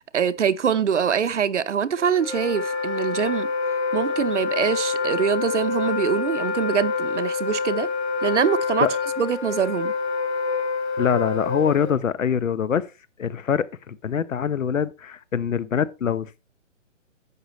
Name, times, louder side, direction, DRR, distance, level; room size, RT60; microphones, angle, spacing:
voice 1, 0.1-3.5 3.9-7.9 8.2-8.9 9.2-9.9, right 7 dB, 65° right, 0.8 m, -24 dB
Wind instrument woodwind instrument, 2.0-11.9, left 4 dB, 55° left, 2.3 m, -27 dB
voice 2, 11.0-12.8 13.2-16.4, left 7 dB, 80° left, 1.0 m, -24 dB
11.0 x 8.4 x 3.0 m
hypercardioid pair, 170°, 39 cm